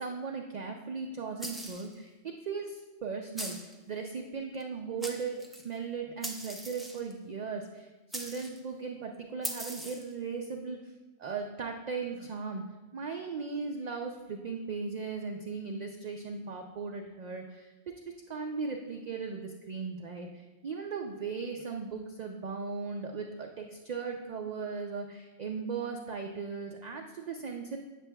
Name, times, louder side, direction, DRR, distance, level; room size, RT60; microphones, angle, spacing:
voice 1, 0.0-5.4 5.6-10.9 11.2-12.6 12.9-17.7 18.0-27.8, right 5 dB, 60° right, 2 dB, 0.4 m, -37 dB
sound 1, 1.4-1.9 3.4-3.8 4.6-4.7 5.0-5.6 6.2-7.1 8.1-8.6 9.4-10.1, equal, ahead, 0.4 m, -40 dB
8.1 x 7.5 x 2.2 m, 1.2 s
omnidirectional pair, 1.2 m